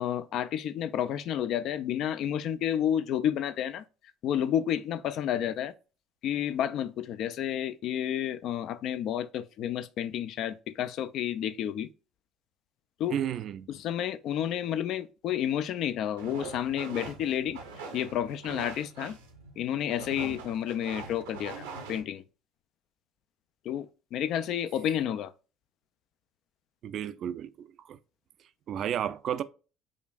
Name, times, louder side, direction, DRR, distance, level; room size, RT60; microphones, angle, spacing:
voice 1, 0.0-3.8 4.2-5.7 6.2-11.9 13.0-13.2 13.7-17.6 17.9-19.2 19.6-22.2 23.6-25.3, left 10 dB, 60° left, 0.3 m, -30 dB
voice 2, 13.1-13.7 26.8-28.0 28.7-29.4, right 10 dB, 55° right, 0.3 m, -32 dB
sound 1, 16.2-22.0, right 4 dB, 90° right, 0.7 m, -43 dB
5.0 x 2.5 x 2.3 m
hypercardioid pair, 65°, 0 cm